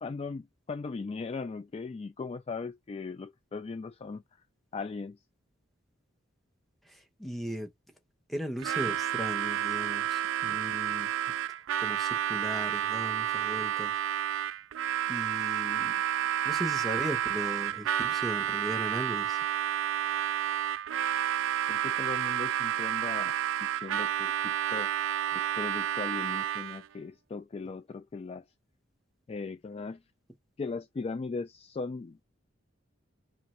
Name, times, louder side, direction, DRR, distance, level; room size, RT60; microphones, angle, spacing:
voice 1, 0.0-4.4 4.7-5.2 21.7-23.3 23.6-24.9 25.3-28.4 29.3-30.0 30.6-32.2, left 4 dB, 30° left, 0.3 m, -38 dB
voice 2, 6.8-7.7 8.3-11.1 11.8-14.0 15.1-16.0 16.4-19.4, equal, ahead, 0.9 m, -37 dB
Harmonica, 8.6-26.9, right 10 dB, 70° right, 0.3 m, -30 dB
3.0 x 2.5 x 4.3 m
head